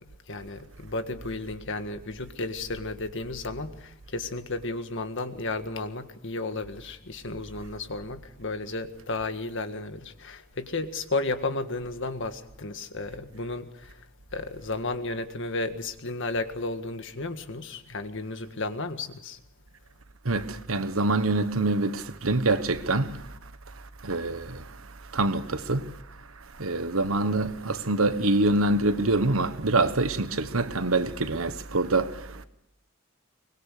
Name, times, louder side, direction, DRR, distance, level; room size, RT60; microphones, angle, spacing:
voice 1, 0.3-14.0 14.3-19.4 26.6-26.7, left 2 dB, 65° left, 1.7 m, -33 dB
voice 2, 20.2-23.4 23.7-32.5, right 2 dB, 85° right, 1.3 m, -26 dB
23.5 x 21.0 x 6.6 m
head